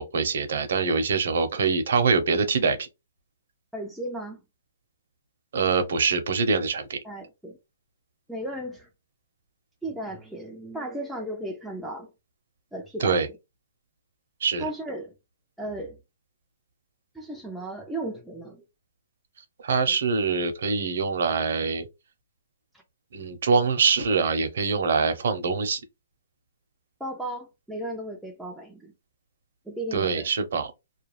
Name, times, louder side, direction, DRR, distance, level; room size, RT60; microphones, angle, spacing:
voice 1, 0.0-2.9 5.5-7.0 13.0-13.3 14.4-14.6 19.6-21.8 23.1-25.8 29.9-30.7, right 5 dB, 65° right, 0.8 m, -24 dB
voice 2, 3.7-4.4 7.0-7.6 8.3-8.9 9.8-12.1 12.7-13.2 14.6-15.1 15.6-16.0 17.1-18.6 19.9-20.0 27.0-28.9 29.7-30.3, right 1 dB, ahead, 0.4 m, -35 dB
2.4 x 2.2 x 3.2 m
hypercardioid pair, 150°, 0 cm